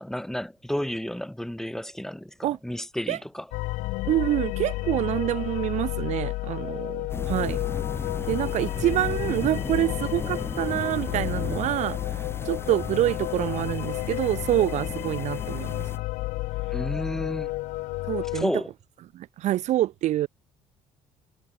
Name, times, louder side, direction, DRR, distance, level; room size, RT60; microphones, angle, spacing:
voice 1, 0.0-3.5 16.7-17.5 18.3-18.7, equal, 5° left, 7.3 m, -31 dB
sound 1, 3.5-18.4, left 20 dB, 85° left, 0.8 m, -31 dB
voice 2, 4.1-7.6 8.3-15.8 18.1-18.5 19.1-20.3, right 14 dB, 65° right, 0.6 m, -26 dB
sound 2, 7.1-16.0, left 3 dB, 20° left, 6.1 m, -36 dB
cardioid pair, 90°, 13 cm